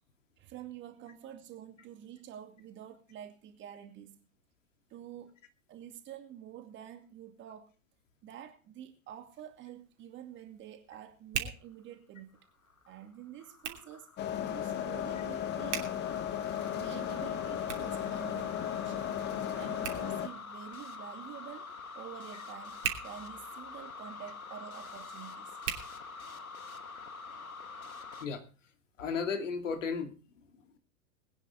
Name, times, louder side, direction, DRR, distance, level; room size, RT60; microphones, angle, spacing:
voice 1, 0.4-4.2 4.9-5.3 5.7-7.7 8.2-12.4 12.9-14.1 14.5-15.8 16.7-19.1 19.5-25.6, right 10 dB, 25° right, 2.3 m, -48 dB
Hands, 9.1-26.7, right 8 dB, 55° right, 3.0 m, -45 dB
sound 1, 12.4-28.3, left 4 dB, 85° left, 1.3 m, -46 dB
sound 2, 14.2-20.3, left 10 dB, 25° left, 1.3 m, -35 dB
voice 2, 29.0-30.8, left 5 dB, 60° left, 2.6 m, -35 dB
21.5 x 9.8 x 3.6 m
figure-of-eight pair, 100°, 41 cm